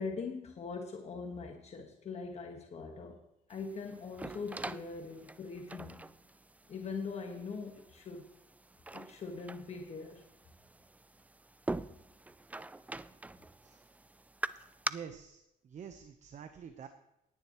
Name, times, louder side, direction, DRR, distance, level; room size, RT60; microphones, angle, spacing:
voice 1, 0.0-3.2 3.5-6.0 6.7-8.3 8.9-10.2, left 4 dB, 40° left, 3 dB, 1.5 m, -42 dB
sound 1, 3.5-14.9, right 2 dB, 10° right, 0.4 m, -44 dB
voice 2, 14.9-16.9, right 7 dB, 45° right, 8 dB, 1.0 m, -47 dB
18.5 x 10.5 x 3.1 m, 0.85 s
cardioid pair, 110°, 17 cm